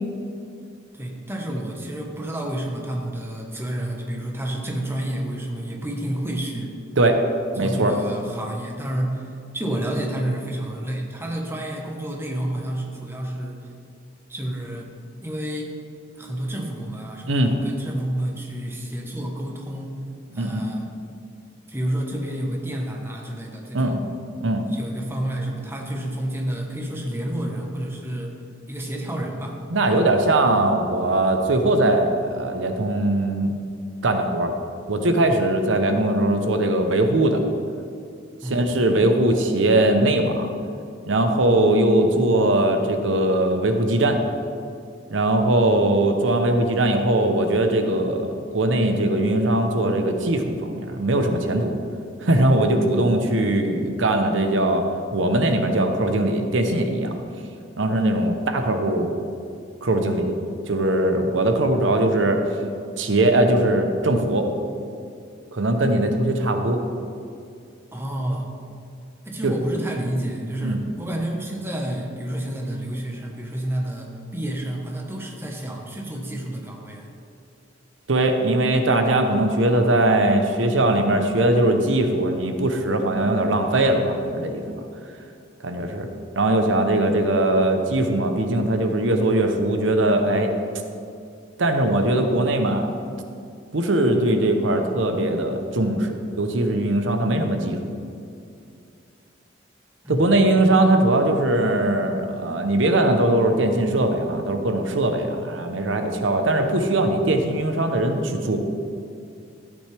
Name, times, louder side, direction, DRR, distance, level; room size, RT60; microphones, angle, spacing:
voice 1, 0.9-6.7 7.6-13.7 14.3-14.9 15.2-15.7 16.2-20.0 20.3-20.9 21.7-24.0 24.6-28.3 28.7-29.6 38.4-38.9 67.9-68.5 69.2-77.1 100.0-100.4, right 1 dB, 10° right, 0 dB, 1.2 m, -30 dB
voice 2, 7.6-7.9 17.3-17.5 20.3-20.6 23.7-24.0 24.4-24.6 29.7-33.5 34.0-34.5 34.9-37.4 38.5-40.5 41.1-44.2 45.1-51.8 52.2-54.8 55.1-57.2 57.8-59.1 59.8-60.4 60.7-62.4 63.0-64.5 65.5-66.8 69.4-69.5 70.6-70.8 78.1-84.8 85.6-86.1 86.4-90.5 91.6-92.9 93.7-97.9 100.1-108.6, right 1 dB, 80° right, 5 dB, 0.9 m, -20 dB
13.0 x 8.6 x 3.4 m, 2.5 s
head